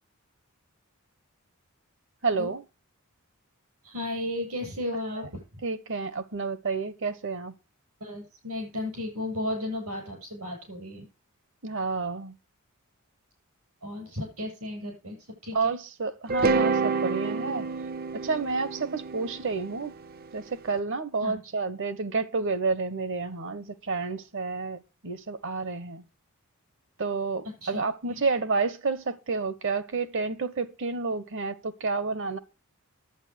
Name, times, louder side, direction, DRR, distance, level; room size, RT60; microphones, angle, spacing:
voice 1, 2.2-2.6 5.6-7.5 11.6-12.3 15.5-17.7 18.2-19.9 20.3-26.0 27.0-32.4, right 4 dB, 60° right, 1.1 m, -30 dB
voice 2, 3.8-5.6 8.0-11.1 13.8-15.7 21.2-21.4 27.4-27.8 28.1-28.2, left 1 dB, 80° right, 7.6 m, -34 dB
sound 1, 16.3-20.5, right 4 dB, 45° right, 0.6 m, -28 dB
11.0 x 8.6 x 6.5 m
head